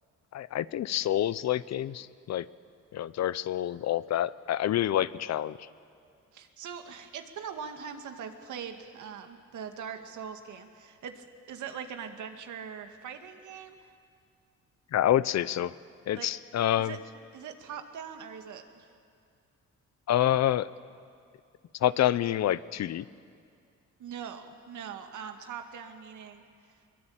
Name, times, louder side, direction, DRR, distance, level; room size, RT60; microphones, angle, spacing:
voice 1, 0.3-2.5 2.9-5.7 14.9-15.7 16.1-17.0 20.1-20.7 21.8-23.1, left 12 dB, 60° left, 17 dB, 0.7 m, -27 dB
voice 2, 6.3-13.9 16.2-16.3 16.8-17.0 17.3-18.9 24.0-26.4, right 7 dB, 75° right, 6 dB, 2.1 m, -42 dB
22.5 x 21.5 x 8.8 m, 2.3 s
cardioid pair, 90°, 30 cm